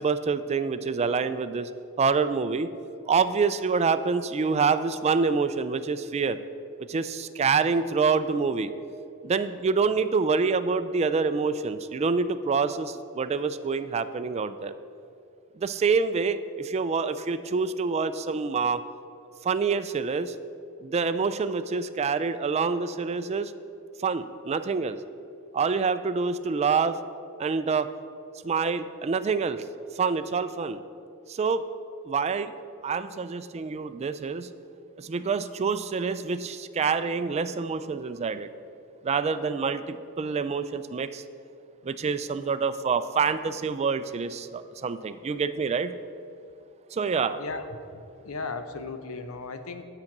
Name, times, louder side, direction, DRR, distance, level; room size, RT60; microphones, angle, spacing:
voice 1, 0.0-1.7 2.0-2.7 3.1-6.4 6.9-8.7 9.2-14.7 15.6-18.8 19.4-20.3 20.8-23.5 24.0-25.0 25.5-27.0 27.4-27.9 28.4-29.6 30.0-30.8 31.3-31.7 32.1-32.5 32.8-34.5 35.0-38.5 39.0-41.2 41.8-45.9 46.9-47.4, right 5 dB, 30° right, 11 dB, 0.3 m, -26 dB
voice 2, 47.9-49.8, left 3 dB, 85° left, 9 dB, 0.7 m, -36 dB
8.8 x 7.6 x 5.9 m, 2.6 s
head